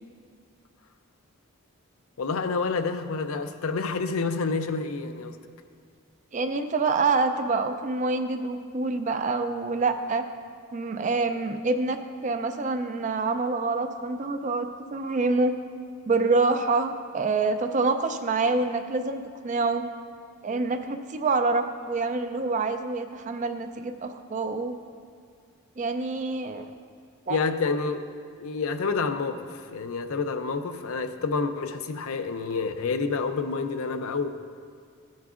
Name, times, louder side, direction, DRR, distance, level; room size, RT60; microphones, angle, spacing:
voice 1, 2.2-5.4 27.3-34.3, left 4 dB, 70° left, 8 dB, 0.5 m, -28 dB
voice 2, 6.3-10.3 10.7-15.5 16.0-19.9 20.4-24.8 25.8-26.7 27.3-27.4, right 3 dB, 35° right, 8 dB, 0.4 m, -26 dB
15.0 x 9.3 x 2.5 m, 2.2 s
head